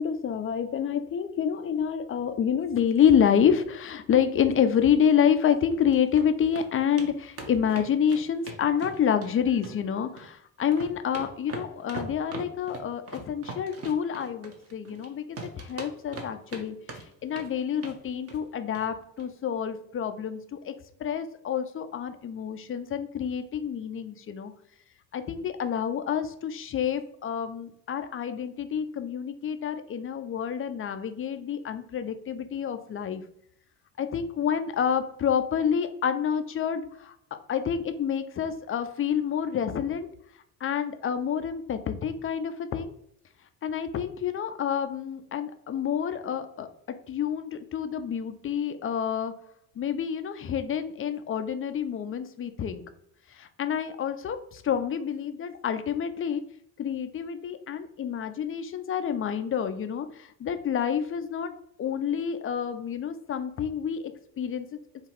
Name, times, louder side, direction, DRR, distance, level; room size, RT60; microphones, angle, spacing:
voice 1, 0.0-16.8 17.2-20.7 21.0-24.5 25.1-33.2 34.0-37.1 37.5-40.1 40.6-42.9 43.6-46.7 47.1-49.3 49.8-52.8 53.3-56.4 56.8-61.5 61.8-64.7, left 8 dB, 30° left, 9 dB, 0.4 m, -28 dB
sound 1, 5.7-6.2 6.5-6.7 7.0-7.1 7.4-9.3 9.6-10.3 10.6-15.1 15.4-16.6 16.9-17.5 17.8-18.0 18.3-18.5 18.7-18.9 19.2-19.3, right 3 dB, 30° right, 0.9 m, -40 dB
3.8 x 2.4 x 4.4 m, 0.69 s
supercardioid pair, 75°, 48 cm